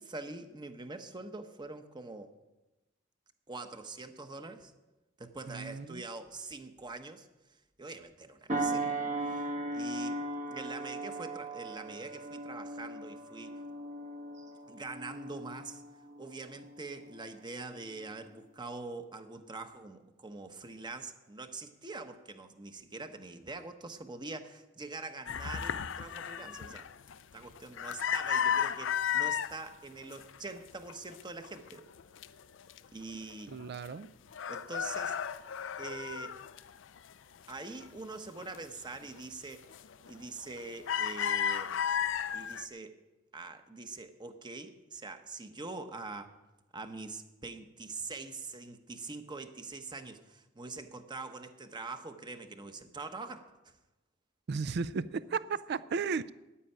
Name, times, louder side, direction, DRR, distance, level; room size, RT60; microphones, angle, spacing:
voice 1, 0.0-2.3 3.5-4.7 5.2-9.0 9.2-9.4 9.7-10.2 10.5-13.6 14.7-15.8 16.2-26.9 27.3-31.8 32.9-33.5 34.5-35.2 35.8-36.4 37.5-39.7 40.1-41.8 42.3-43.0 43.3-46.3 46.7-53.7, right 3 dB, 25° right, 1.0 m, -44 dB
voice 2, 5.5-6.0 33.5-34.1 54.5-56.3, right 5 dB, 55° right, 0.4 m, -35 dB
sound 1, 8.5-17.3 17.8-18.0, right 2 dB, 40° right, 1.2 m, -38 dB
sound 2, 25.2-29.5 30.0-30.6 30.9-32.3 32.7-32.8 33.1-34.0 34.3-37.1 37.5-38.6 39.0-39.2 39.7-40.1 40.4-42.6, left 8 dB, 70° left, 0.5 m, -34 dB
9.9 x 9.0 x 9.8 m
head